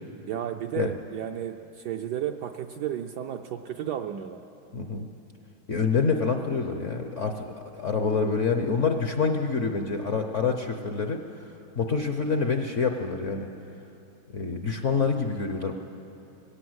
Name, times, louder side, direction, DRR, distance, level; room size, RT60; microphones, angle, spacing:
voice 1, 0.3-4.4, right 10 dB, 70° right, 5 dB, 1.0 m, -33 dB
voice 2, 4.7-5.1 5.7-11.2 11.8-13.5 14.3-15.7, left 5 dB, 55° left, 5 dB, 0.8 m, -26 dB
19.5 x 17.0 x 8.0 m, 2.9 s
omnidirectional pair, 2.3 m